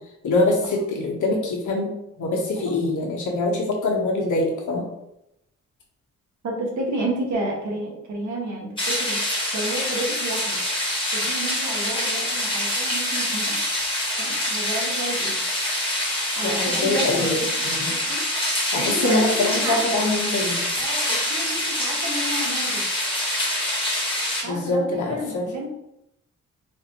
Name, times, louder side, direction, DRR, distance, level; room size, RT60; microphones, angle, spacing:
voice 1, 0.2-4.9 16.4-17.3 17.6-17.9 18.7-20.6 24.4-25.5, left 2 dB, 70° left, -1 dB, 1.1 m, -24 dB
voice 2, 6.4-9.2 9.5-10.6 11.1-13.6 14.2-15.4 16.3-17.4 17.9-18.2 18.8-20.0 20.8-22.8 24.4-25.7, right 1 dB, 65° right, -1 dB, 1.3 m, -31 dB
sound 1, 8.8-24.4, left 1 dB, 15° left, 1.3 m, -25 dB
4.2 x 2.5 x 2.9 m, 0.84 s
cardioid pair, 75°, 31 cm